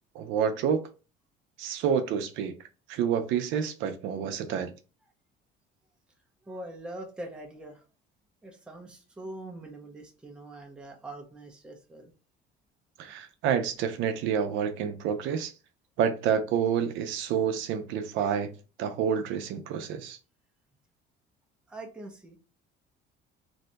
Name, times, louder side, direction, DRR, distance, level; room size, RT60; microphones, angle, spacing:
voice 1, 0.1-0.8 1.6-2.5 2.9-4.7 13.0-15.5 16.0-18.5 18.8-20.2, right 7 dB, 65° right, 0.5 m, -28 dB
voice 2, 6.4-7.8 8.4-12.1 21.7-22.4, right 1 dB, 5° right, 0.5 m, -43 dB
2.7 x 2.2 x 3.9 m
cardioid pair, 165°, 21 cm